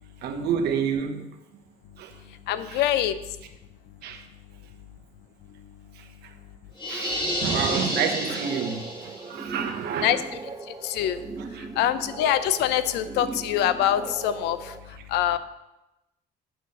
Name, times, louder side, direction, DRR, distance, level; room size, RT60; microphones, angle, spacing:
voice 1, 0.2-1.3 2.0-2.2 2.6-2.9 4.0-4.3 5.9-6.3 6.9-10.2 11.4-11.7, right 7 dB, 70° right, 1.1 m, -29 dB
voice 2, 2.5-3.1 10.0-10.2 10.8-11.2 11.8-14.6 15.1-15.4, left 11 dB, 85° left, 0.6 m, -24 dB
sound 1, 6.8-9.3, equal, 25° left, 2.7 m, -30 dB
sound 2, 7.4-14.8, right 4 dB, 20° right, 0.7 m, -39 dB
7.8 x 5.8 x 6.5 m
cardioid pair, 110°, 17 cm